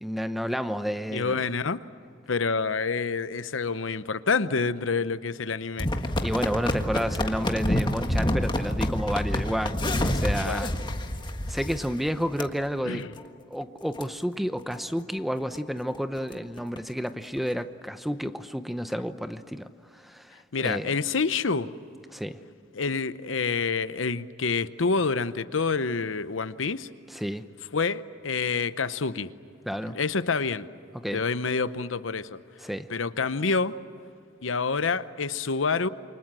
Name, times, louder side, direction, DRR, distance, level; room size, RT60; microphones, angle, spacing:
voice 1, 0.0-1.4 6.2-10.7 11.4-13.0 13.5-19.7 19.9-20.9 22.1-22.4 27.1-27.5 29.6-30.0 30.9-31.2 32.6-32.9, equal, ahead, 10 dB, 0.8 m, -30 dB
voice 2, 1.1-1.8 2.3-6.1 10.4-10.7 12.9-13.1 20.5-21.7 22.7-26.9 27.7-29.3 29.8-30.7 31.1-32.4 32.9-33.8 34.4-35.9, left 4 dB, 85° left, 13 dB, 0.9 m, -27 dB
sound 1, 5.8-12.0 12.4-12.5 13.0-13.2 13.6-13.7 14.0-14.1 14.6-14.8 15.2-15.3 15.5-15.6 15.9-16.8 17.4-17.5, left 1 dB, 25° left, 1.6 m, -28 dB
28.5 x 24.5 x 7.6 m, 2.5 s
head